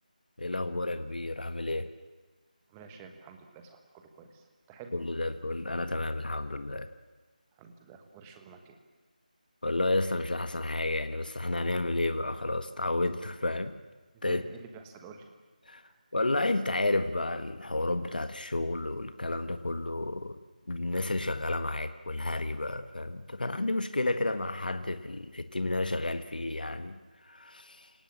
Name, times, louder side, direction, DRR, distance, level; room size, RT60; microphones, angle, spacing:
voice 1, 0.4-1.9 4.9-6.9 9.6-13.7 14.2-14.4 15.6-15.8 16.1-20.4 20.7-27.9, left 2 dB, 75° left, 10 dB, 1.7 m, -31 dB
voice 2, 2.7-4.9 7.6-8.8 14.1-15.3 15.8-16.0, right 5 dB, 10° right, 5 dB, 1.3 m, -49 dB
28.5 x 18.0 x 7.4 m, 1.2 s
figure-of-eight pair, 170°, 5 cm